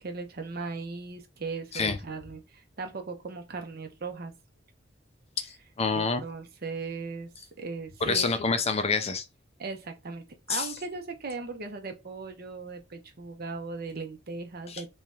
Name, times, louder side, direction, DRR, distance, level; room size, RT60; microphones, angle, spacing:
voice 1, 0.0-4.3 6.0-7.3 7.6-8.3 9.6-14.9, right 4 dB, 55° right, 0.8 m, -38 dB
voice 2, 5.4-6.2 8.0-9.2 10.5-10.7 14.7-14.9, left 4 dB, 35° left, 0.5 m, -27 dB
3.1 x 2.8 x 3.5 m
head